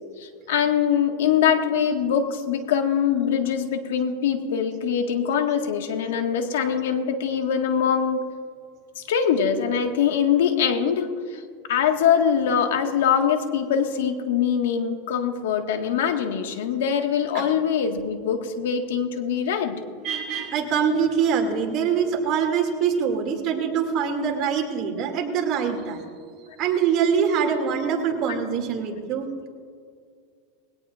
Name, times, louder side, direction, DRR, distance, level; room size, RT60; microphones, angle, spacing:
voice 1, 0.2-8.2 9.0-11.4 11.7-19.8, left 7 dB, 85° left, 5 dB, 1.7 m, -23 dB
voice 2, 20.0-26.0 26.6-29.5, right 7 dB, 40° right, 2 dB, 2.5 m, -24 dB
21.0 x 17.5 x 2.5 m, 2.1 s
supercardioid pair, 145°, 0 cm